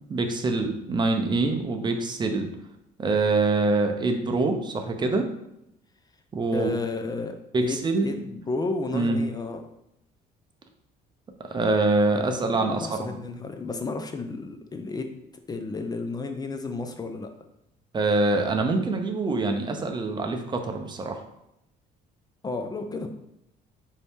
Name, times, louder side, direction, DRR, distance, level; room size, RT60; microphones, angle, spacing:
voice 1, 0.1-2.5 3.0-5.3 6.3-6.7 7.5-8.1 8.9-9.2 11.5-13.1 17.9-21.2, right 3 dB, 25° right, 5 dB, 0.6 m, -25 dB
voice 2, 6.5-9.6 12.5-15.1 15.5-17.3 22.4-23.1, left 3 dB, 25° left, 6 dB, 0.4 m, -32 dB
4.0 x 2.7 x 3.5 m, 0.81 s
cardioid pair, 110°, 17 cm